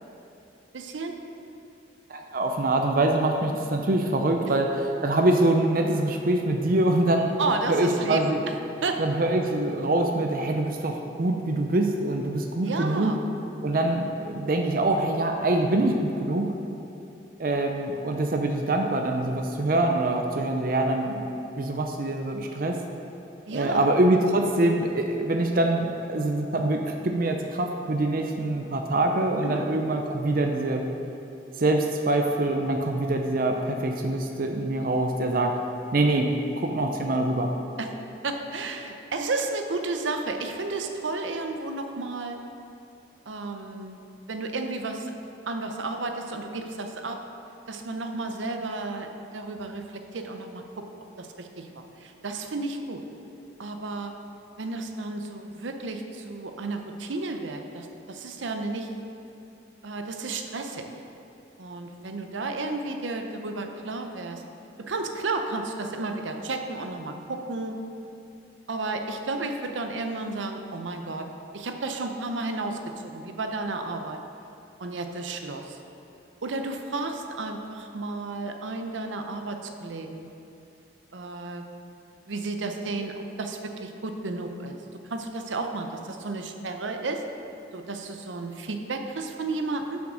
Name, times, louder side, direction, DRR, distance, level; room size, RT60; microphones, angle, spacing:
voice 1, 0.7-1.2 7.4-8.5 8.8-9.0 12.6-13.2 23.5-23.9 29.4-29.6 37.8-37.9 38.2-42.4 43.3-44.0 44.3-45.1 45.5-47.2 47.7-50.9 51.2-53.0 53.6-54.1 54.6-58.9 59.8-60.9 61.6-64.4 64.8-67.8 68.7-71.3 71.5-74.2 74.8-75.8 76.4-80.3 81.1-81.6 82.3-84.8 85.1-87.2 87.7-90.0, right 3 dB, 85° right, 5 dB, 0.7 m, -32 dB
voice 2, 2.1-7.3 7.7-8.4 9.0-13.2 13.6-16.5 17.4-21.3 21.6-22.8 23.5-30.8 31.6-35.5 35.9-37.5, right 2 dB, 50° right, 3 dB, 0.6 m, -24 dB
7.2 x 6.1 x 6.3 m, 2.7 s
head